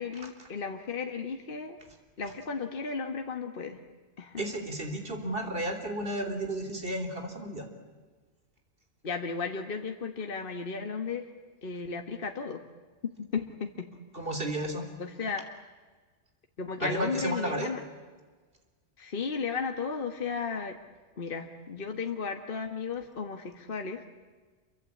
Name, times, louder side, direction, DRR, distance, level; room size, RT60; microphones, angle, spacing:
voice 1, 0.0-1.8 2.2-3.8 4.2-4.4 9.0-11.2 11.6-12.6 13.2-13.9 15.0-15.4 16.6-17.8 19.0-20.7 21.2-24.0, left 5 dB, 50° left, 5 dB, 1.6 m, -34 dB
voice 2, 4.4-7.7 14.1-14.9 16.8-17.7, right 1 dB, 50° right, 5 dB, 3.9 m, -33 dB
28.0 x 23.5 x 8.6 m, 1.4 s
omnidirectional pair, 1.2 m